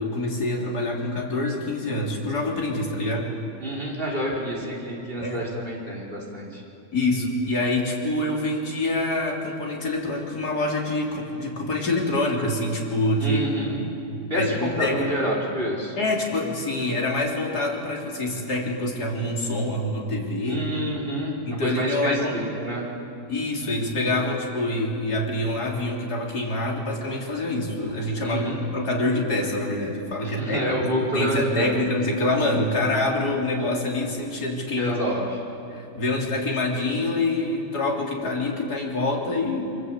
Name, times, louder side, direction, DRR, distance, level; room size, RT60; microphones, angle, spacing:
voice 1, 0.0-3.3 5.2-5.5 6.9-13.5 13.8-13.9 14.3-15.1 16.0-20.7 21.5-22.4 23.3-35.0 35.7-39.7, left 2 dB, 85° left, -1 dB, 3.9 m, -26 dB
voice 2, 3.6-6.6 13.2-13.8 14.3-16.0 20.5-22.8 28.2-28.6 30.2-31.7 34.7-35.4, equal, 35° right, -3 dB, 5.2 m, -28 dB
28.5 x 24.0 x 8.2 m, 2.7 s
omnidirectional pair, 1.6 m